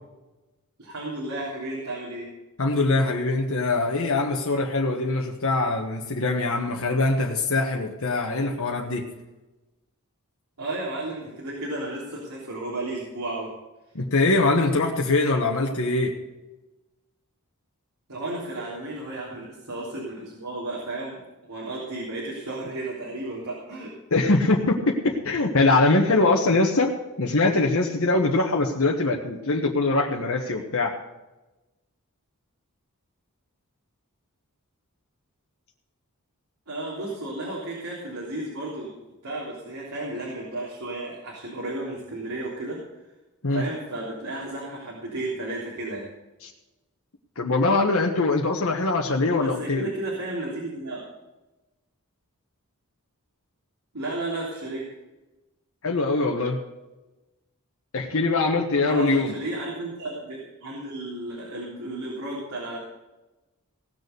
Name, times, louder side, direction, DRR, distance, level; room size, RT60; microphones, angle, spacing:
voice 1, 0.8-2.3 10.6-13.5 18.1-21.2 21.5-23.9 36.7-38.9 39.2-42.8 43.5-46.1 49.3-51.0 53.9-54.9 58.8-62.8, right 2 dB, 90° right, -5 dB, 3.5 m, -33 dB
voice 2, 2.6-9.1 13.9-16.2 24.1-31.0 43.4-43.6 46.4-46.5 47.4-49.9 55.8-56.6 57.9-59.4, left 2 dB, 65° left, 1 dB, 1.3 m, -23 dB
18.0 x 6.8 x 6.8 m, 1.1 s
head